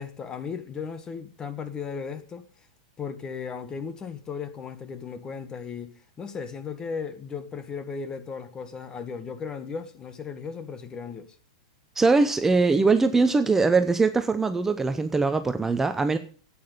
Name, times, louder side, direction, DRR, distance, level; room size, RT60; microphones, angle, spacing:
voice 1, 0.0-2.5 3.0-11.3, left 6 dB, 20° left, 1.4 m, -36 dB
voice 2, 12.0-16.2, right 4 dB, 10° right, 0.8 m, -22 dB
11.5 x 8.8 x 6.7 m
hypercardioid pair, 125°, 3 cm